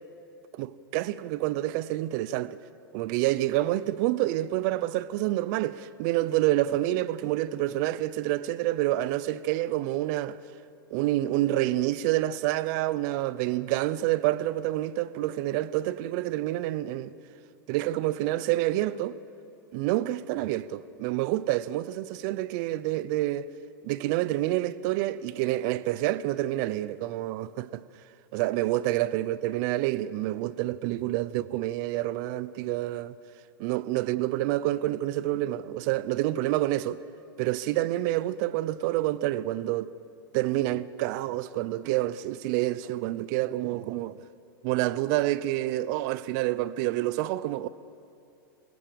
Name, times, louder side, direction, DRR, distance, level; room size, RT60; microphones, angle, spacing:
voice 1, 0.5-2.6 2.9-10.4 10.9-17.1 17.7-19.2 19.7-23.5 23.8-27.8 28.3-33.2 33.6-37.0 37.4-39.9 40.3-44.2 44.6-47.7, right 15 dB, 55° right, 0.7 m, -28 dB
22.0 x 19.0 x 7.0 m
hypercardioid pair, 115°, 12 cm